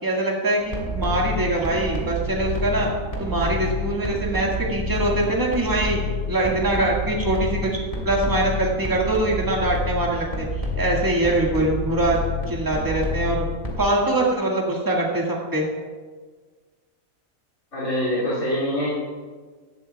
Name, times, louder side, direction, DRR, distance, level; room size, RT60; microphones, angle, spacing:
voice 1, 0.0-2.9 3.2-6.0 6.3-7.8 8.0-10.5 10.8-12.2 12.5-13.4 13.8-15.6, right 2 dB, 15° right, -3 dB, 1.8 m, -23 dB
sound 1, 0.6-13.8, left 2 dB, 25° left, 2.0 m, -29 dB
voice 2, 17.7-18.9, left 1 dB, 80° left, -9 dB, 3.3 m, -24 dB
17.0 x 12.0 x 2.3 m, 1.4 s
omnidirectional pair, 1.5 m